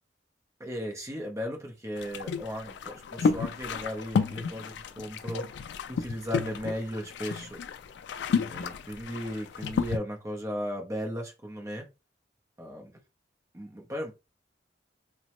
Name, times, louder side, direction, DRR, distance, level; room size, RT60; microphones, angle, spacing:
voice 1, 0.6-7.6 8.4-11.9 12.6-12.9 13.5-14.1, equal, 15° right, 0.7 m, -36 dB
sound 1, 2.0-10.0, left 5 dB, 70° left, 0.3 m, -32 dB
2.9 x 2.1 x 2.9 m
head